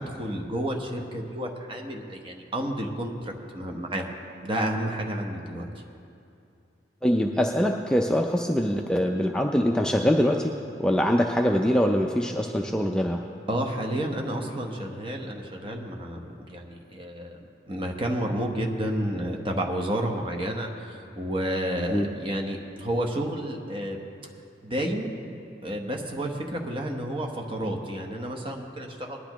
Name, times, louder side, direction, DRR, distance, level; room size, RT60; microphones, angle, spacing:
voice 1, 0.0-4.1 4.4-5.7 13.5-17.4 17.7-24.0 24.6-25.1 25.6-29.2, right 1 dB, 30° right, 1 dB, 1.1 m, -30 dB
voice 2, 7.0-10.5 10.8-13.2 21.9-22.1, equal, 5° left, 1 dB, 0.4 m, -23 dB
19.5 x 10.5 x 3.0 m, 2.6 s
head